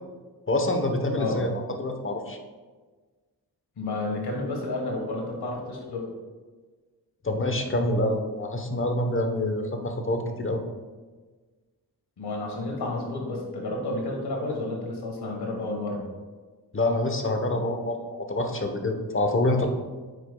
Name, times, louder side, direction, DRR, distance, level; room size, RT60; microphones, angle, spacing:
voice 1, 0.5-2.4 7.2-10.6 16.7-18.0 18.3-19.7, left 1 dB, 30° left, 5 dB, 1.0 m, -26 dB
voice 2, 3.8-6.1 12.2-16.1, left 2 dB, 70° left, 0 dB, 1.4 m, -31 dB
9.0 x 4.8 x 2.3 m, 1.4 s
cardioid pair, 45°, 40 cm